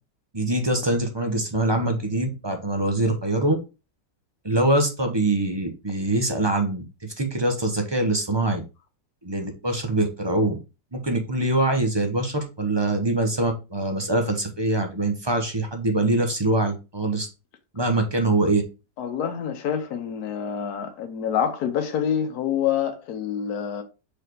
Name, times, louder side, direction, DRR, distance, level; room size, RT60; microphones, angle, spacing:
voice 1, 0.3-3.6 4.4-8.6 9.2-10.6 10.9-17.3 17.7-18.6, right 2 dB, 20° right, 0.7 m, -24 dB
voice 2, 19.0-23.8, left 8 dB, 65° left, 1.4 m, -27 dB
5.1 x 4.1 x 4.6 m
omnidirectional pair, 1.9 m